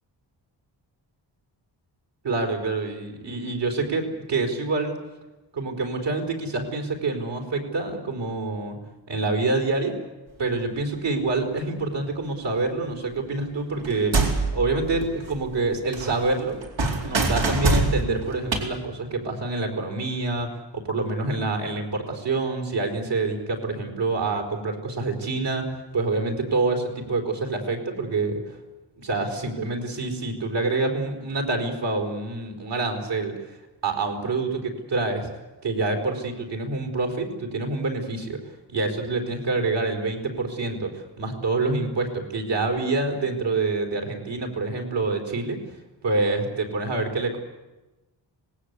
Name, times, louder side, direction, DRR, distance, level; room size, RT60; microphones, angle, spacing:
voice 1, 2.2-5.0 5.5-8.8 9.1-10.0 10.4-14.2 14.5-16.6 17.0-28.6 29.0-33.3 33.8-35.3 35.6-38.4 38.7-45.6 46.0-47.4, right 3 dB, 65° right, 3 dB, 4.7 m, -27 dB
sound 1, 13.8-15.7 15.9-18.6, right 3 dB, 85° right, 4.4 m, -25 dB
26.0 x 20.0 x 8.3 m, 1.1 s
wide cardioid pair, 140°, 45 cm